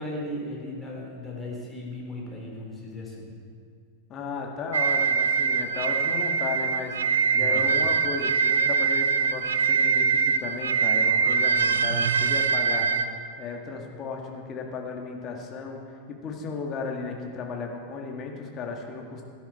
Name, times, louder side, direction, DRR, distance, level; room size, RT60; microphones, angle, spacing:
voice 1, 0.0-3.3 7.4-7.7, left 1 dB, 10° left, -4 dB, 3.8 m, -36 dB
voice 2, 4.1-7.0 7.3-12.9 13.4-19.2, left 4 dB, 30° left, 1 dB, 2.0 m, -35 dB
sound 1, 4.7-13.0, right 5 dB, 70° right, 0.6 m, -23 dB
17.5 x 10.5 x 4.4 m, 2.3 s
figure-of-eight pair, 90°, 0 cm